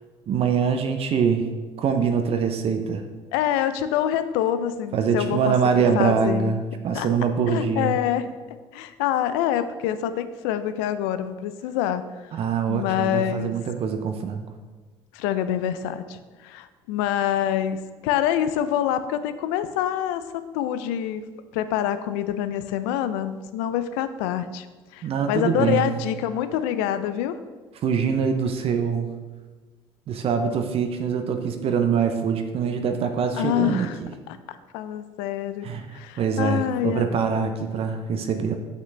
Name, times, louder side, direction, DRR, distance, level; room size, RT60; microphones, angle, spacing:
voice 1, 0.3-1.5 1.8-3.0 4.9-8.0 12.3-14.5 25.0-25.9 27.8-29.1 30.1-34.1 35.6-38.6, right 6 dB, 50° right, 7 dB, 0.6 m, -24 dB
voice 2, 3.3-6.5 6.9-7.1 7.5-8.4 8.7-12.3 12.7-13.5 15.1-21.2 21.5-24.7 24.9-27.4 33.3-34.0 34.3-37.2, left 10 dB, 85° left, 12 dB, 0.4 m, -26 dB
5.8 x 5.8 x 3.3 m, 1.4 s
supercardioid pair, 80°, 12 cm